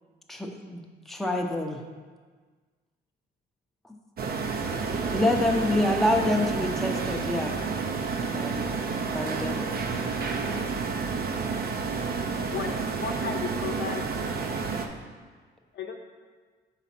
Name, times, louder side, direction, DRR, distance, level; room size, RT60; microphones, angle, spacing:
voice 1, 0.3-1.8 5.1-7.5 8.3-8.7 9.0-9.7, left 1 dB, ahead, 1 dB, 0.7 m, -27 dB
sound 1, 4.2-14.9, right 4 dB, 50° right, 0.7 m, -30 dB
voice 2, 4.4-5.2 5.5-6.4 8.1-8.9 9.5-9.7 10.3-11.4, right 1 dB, 25° right, 2 dB, 0.9 m, -43 dB
voice 3, 12.5-14.0 15.7-15.9, left 6 dB, 60° left, 3 dB, 0.7 m, -34 dB
4.9 x 4.1 x 5.9 m, 1.5 s
cardioid pair, 90°, 20 cm